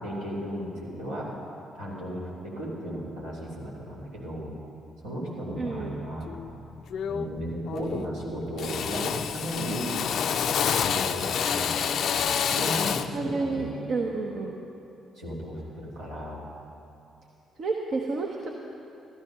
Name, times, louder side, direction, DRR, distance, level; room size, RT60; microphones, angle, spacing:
voice 1, 0.0-1.3 1.8-4.5 5.0-6.3 7.1-9.9 10.8-13.8 15.1-16.4, equal, 70° right, -7 dB, 3.2 m, -35 dB
voice 2, 5.6-6.0 13.1-14.5 17.6-18.5, right 3 dB, 50° right, 1 dB, 1.0 m, -30 dB
Drill, 6.3-6.5 6.9-7.4 7.7-8.2 8.6-13.2, left 7 dB, 55° left, 0.4 m, -28 dB
14.0 x 13.0 x 5.5 m, 2.8 s
figure-of-eight pair, 40°, 0 cm